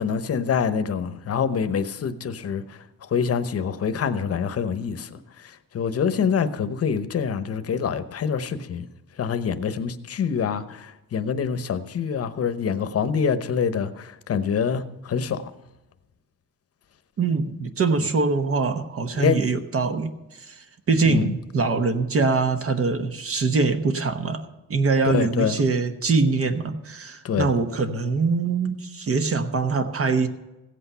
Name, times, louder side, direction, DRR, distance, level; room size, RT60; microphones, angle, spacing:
voice 1, 0.0-8.9 9.2-15.4 19.2-19.4 21.0-21.3 25.0-25.6 27.2-27.5, left 6 dB, 45° left, 0.9 m, -26 dB
voice 2, 17.2-24.4 24.7-30.3, right 4 dB, 40° right, 1.0 m, -23 dB
15.5 x 8.3 x 5.6 m
cardioid pair, 150°, 34 cm